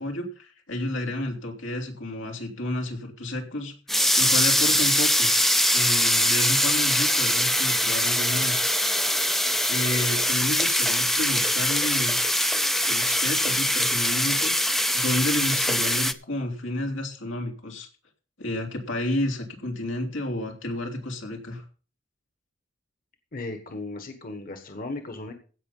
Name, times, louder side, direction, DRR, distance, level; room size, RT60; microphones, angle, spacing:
voice 1, 0.0-5.3 5.7-8.5 9.5-12.2 12.8-17.9 18.4-21.6, left 1 dB, 90° left, 1 dB, 2.9 m, -31 dB
sound 1, 3.9-16.1, left 1 dB, ahead, 0.5 m, -23 dB
voice 2, 23.3-25.3, left 2 dB, 45° left, 6 dB, 1.4 m, -36 dB
16.0 x 5.7 x 5.5 m, 0.38 s
head